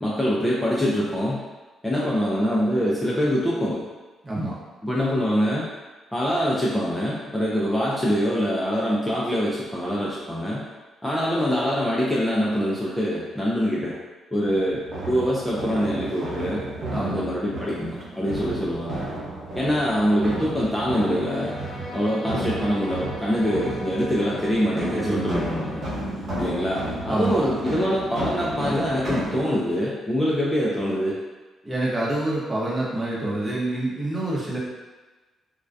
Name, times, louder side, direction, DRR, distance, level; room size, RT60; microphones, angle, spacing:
voice 1, 0.0-1.4 1.8-3.8 4.8-5.7 6.1-10.6 11.0-13.9 14.3-14.8 15.1-19.1 19.6-21.5 21.9-25.8 26.4-31.1, equal, 10° left, -7 dB, 0.4 m, -24 dB
voice 2, 4.2-4.6 16.9-17.2 24.9-25.5 27.1-27.5 31.6-34.6, right 1 dB, 20° right, -6 dB, 0.8 m, -27 dB
sound 1, 14.4-29.4, right 1 dB, 60° right, 0.9 m, -33 dB
Bowed string instrument, 21.1-26.1, left 2 dB, 70° left, 0.5 m, -40 dB
2.2 x 2.2 x 2.5 m, 1.2 s
cardioid pair, 90°, 0 cm